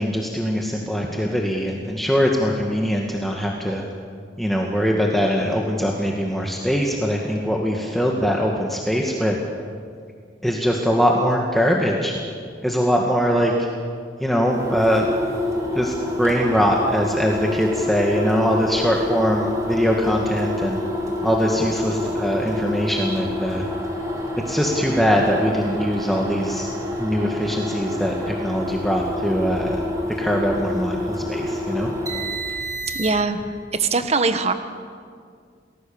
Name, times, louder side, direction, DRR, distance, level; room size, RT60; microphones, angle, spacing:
voice 1, 0.0-3.8 4.4-9.4 10.4-12.2 12.6-13.7 14.2-15.1 15.7-20.8 21.2-23.7 24.4-26.7 27.0-29.8 30.2-31.9, equal, ahead, -1 dB, 1.9 m, -22 dB
sound 1, 14.4-33.4, left 1 dB, 20° right, 4.3 m, -28 dB
voice 2, 32.9-34.5, right 4 dB, 40° right, 9 dB, 1.3 m, -22 dB
29.5 x 20.0 x 7.2 m, 2.1 s
head